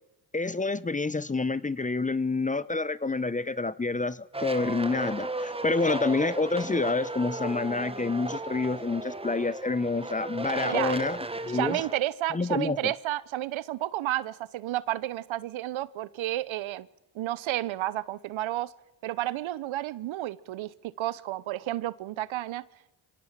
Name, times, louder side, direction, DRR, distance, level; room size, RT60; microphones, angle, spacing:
voice 1, 0.3-11.2 11.5-11.8 12.3-12.9, left 3 dB, 15° left, 0.8 m, -28 dB
sound 1, 4.3-12.0, right 2 dB, 10° right, 1.4 m, -35 dB
voice 2, 10.6-11.0 11.5-16.9 17.1-18.7 19.0-22.7, right 15 dB, 75° right, 1.0 m, -31 dB
24.0 x 17.5 x 7.5 m
supercardioid pair, 65°, 47 cm